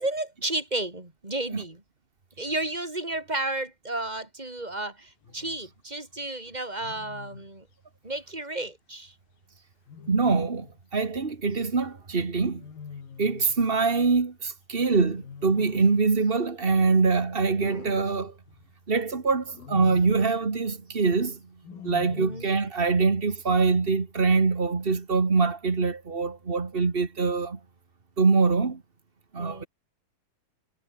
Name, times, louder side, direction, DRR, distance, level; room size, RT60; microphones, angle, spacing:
voice 1, 0.0-1.8 2.4-7.7 8.0-9.1 22.1-22.5 29.4-29.7, right 2 dB, 10° right, 3.4 m, -32 dB
Wild animals, 5.2-5.6 6.8-7.5 9.9-10.8 12.5-13.6 15.1-16.1 17.6-18.7 19.5-20.3 21.6-22.6, left 6 dB, 75° left, 5.7 m, -44 dB
voice 2, 10.1-10.7 10.9-12.6 13.2-18.3 18.9-21.4 21.8-27.6 28.2-28.8 29.3-29.6, right 4 dB, 65° right, 0.5 m, -24 dB
omnidirectional pair, 4.2 m